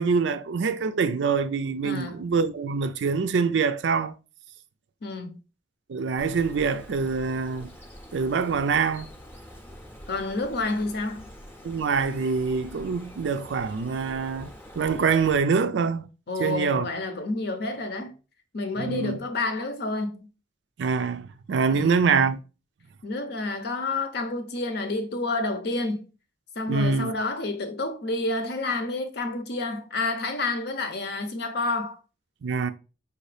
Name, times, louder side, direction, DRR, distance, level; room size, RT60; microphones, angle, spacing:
voice 1, 0.0-4.1 5.9-7.7 8.1-9.1 11.6-16.1 16.4-16.9 18.8-19.2 20.8-22.4 26.7-27.1 32.4-32.7, right 5 dB, 70° right, 0.4 m, -25 dB
voice 2, 1.8-2.2 5.0-5.4 10.1-11.3 16.3-18.1 18.5-20.3 21.7-22.1 23.0-26.1 26.6-32.0, left 2 dB, 60° left, 0.7 m, -29 dB
Bird, 6.2-15.4, equal, 10° left, 0.7 m, -45 dB
4.8 x 2.7 x 3.2 m
head